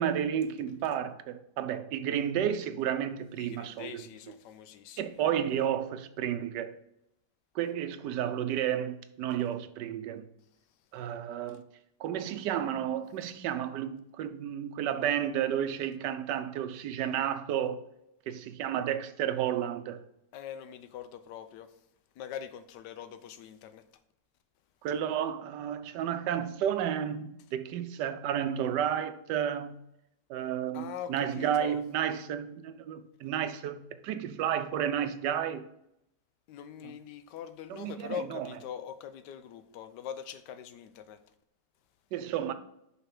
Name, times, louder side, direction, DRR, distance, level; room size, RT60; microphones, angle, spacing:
voice 1, 0.0-4.0 5.0-6.8 7.5-10.3 10.9-11.6 12.0-17.8 18.3-20.0 24.8-29.8 30.3-35.6 37.7-38.5 42.1-42.5, right 9 dB, 80° right, 1.2 m, -32 dB
voice 2, 3.4-5.2 11.5-11.6 20.3-21.8 22.1-23.8 30.7-31.8 36.5-41.2, left 9 dB, 80° left, 1.2 m, -43 dB
5.4 x 4.0 x 5.9 m
omnidirectional pair, 1.8 m